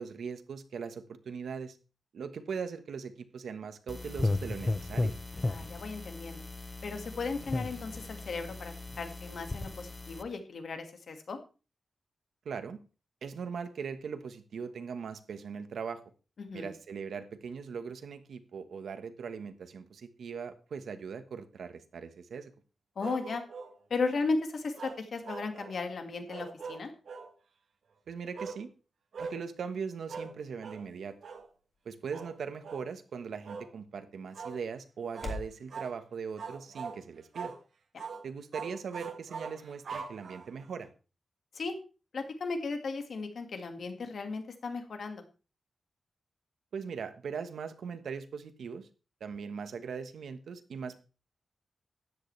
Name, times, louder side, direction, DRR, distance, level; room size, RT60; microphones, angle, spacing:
voice 1, 0.0-1.8 2.1-5.1 12.4-12.8 13.2-16.0 16.5-22.5 28.1-28.7 29.2-31.1 31.8-37.5 38.2-40.9 46.7-48.9 49.2-51.0, right 6 dB, 85° right, 9 dB, 1.3 m, -40 dB
sound 1, 3.9-10.2, left 2 dB, 20° left, 0.6 m, -35 dB
voice 2, 5.5-6.4 6.8-11.4 16.4-16.7 23.0-23.4 23.9-26.9 37.9-38.1 41.5-41.7 42.1-45.2, left 4 dB, 60° left, 6 dB, 1.9 m, -36 dB
sound 2, 23.0-23.8 24.8-25.8 26.3-27.3 28.4-28.6 29.1-29.4 30.1-30.4 30.6-30.9 31.2-31.5 32.1-32.3 32.6-32.9 33.4-33.7 34.3-34.6 35.1-35.4 35.7-36.0 36.4-37.0 37.3-37.6 38.0-38.2 38.5-40.7, right 5 dB, 65° right, 1.5 m, -42 dB
sound 3, 29.3-35.6, left 2 dB, 35° left, 2.6 m, -49 dB
13.5 x 10.5 x 3.3 m, 0.34 s
wide cardioid pair, 160°, 0 cm